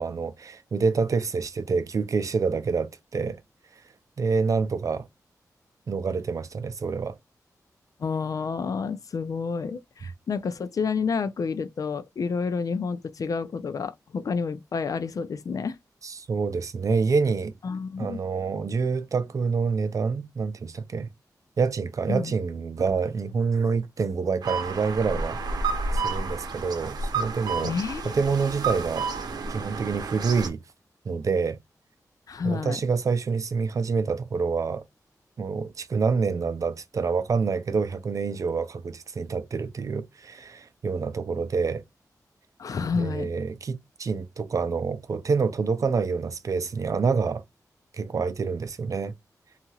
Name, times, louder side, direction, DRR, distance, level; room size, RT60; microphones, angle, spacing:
voice 1, 0.0-3.4 4.2-5.1 5.9-7.2 16.0-17.5 18.0-21.1 21.6-25.4 25.9-27.8 28.1-29.1 29.5-30.6 31.1-31.6 32.4-34.8 35.4-41.8 42.9-47.4 48.0-49.1, right 5 dB, 55° right, 0.5 m, -27 dB
voice 2, 8.0-15.8 17.6-18.2 22.1-22.3 27.6-28.1 32.3-32.8 42.6-43.3, left 5 dB, 60° left, 0.4 m, -29 dB
sound 1, 24.4-30.5, right 3 dB, 90° right, 0.7 m, -30 dB
2.8 x 2.4 x 2.7 m
wide cardioid pair, 105°, 7 cm